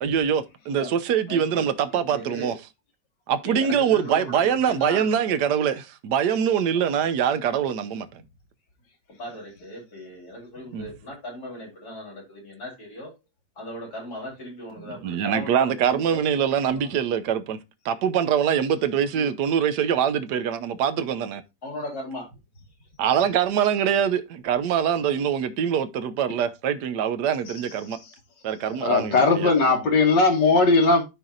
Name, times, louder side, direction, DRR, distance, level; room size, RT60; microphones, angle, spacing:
voice 1, 0.0-2.6 3.3-8.1 10.7-10.9 14.8-17.6 17.8-21.4 23.0-28.0 28.4-29.5, right 8 dB, 70° right, 1.3 m, -24 dB
voice 2, 1.3-1.7 2.1-2.6 3.4-5.2 9.2-13.1 13.6-16.3 16.6-17.0 19.0-19.3 21.6-22.3, equal, 50° left, 4.0 m, -37 dB
voice 3, 28.8-31.0, left 3 dB, 70° left, 2.2 m, -18 dB
13.0 x 4.6 x 2.5 m
omnidirectional pair, 2.0 m